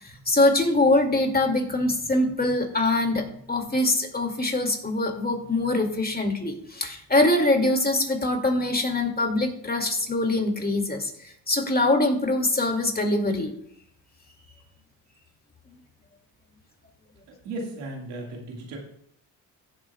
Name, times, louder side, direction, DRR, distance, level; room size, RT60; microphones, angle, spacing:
voice 1, 0.0-13.5, left 2 dB, 20° left, 3 dB, 2.2 m, -23 dB
voice 2, 17.3-18.8, right 2 dB, 90° right, 0 dB, 1.9 m, -36 dB
15.5 x 7.5 x 2.3 m, 0.70 s
cardioid pair, 70°, 41 cm